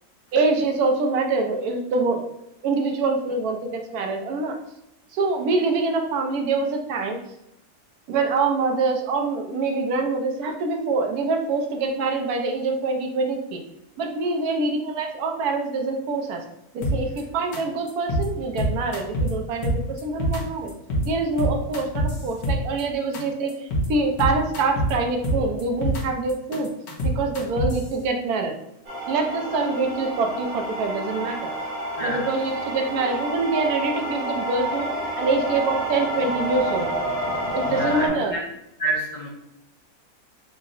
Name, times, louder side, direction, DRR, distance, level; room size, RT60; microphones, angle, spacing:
voice 1, 0.3-2.2 2.6-4.6 5.1-7.2 8.1-13.6 14.0-16.4 16.7-20.7 21.0-26.7 27.0-28.5 29.1-31.5 32.0-34.9 35.2-36.9 37.5-38.3, right 3 dB, 75° right, 3 dB, 1.0 m, -25 dB
sound 1, 16.8-17.2 17.5-17.6 17.9-18.3 18.6-19.3 19.6-20.4 20.7-21.1 21.4-22.8 23.1-23.2 23.5-23.9 24.2-24.9 25.2-26.0 26.3-27.8, right 1 dB, 75° left, 1.3 m, -24 dB
sound 2, 28.9-38.1, right 1 dB, 40° right, 0.9 m, -29 dB
voice 2, 37.6-38.4 38.8-39.3, right 1 dB, 55° left, -5 dB, 0.3 m, -28 dB
3.7 x 2.0 x 3.8 m, 0.83 s
omnidirectional pair, 1.7 m